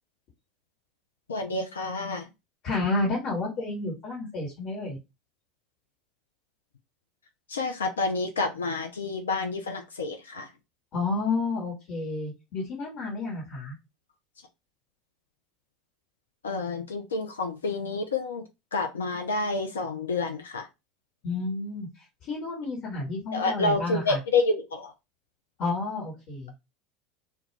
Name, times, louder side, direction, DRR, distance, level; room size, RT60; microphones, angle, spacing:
voice 1, 1.3-2.3 7.5-10.5 16.4-18.4 18.7-20.7 23.3-24.9, left 3 dB, 80° left, 0.4 m, -29 dB
voice 2, 2.6-5.0 10.9-13.7 21.2-21.9 22.2-24.2 25.6-26.5, left 3 dB, 50° left, 1.2 m, -30 dB
2.3 x 2.3 x 3.0 m
figure-of-eight pair, 75°, 0 cm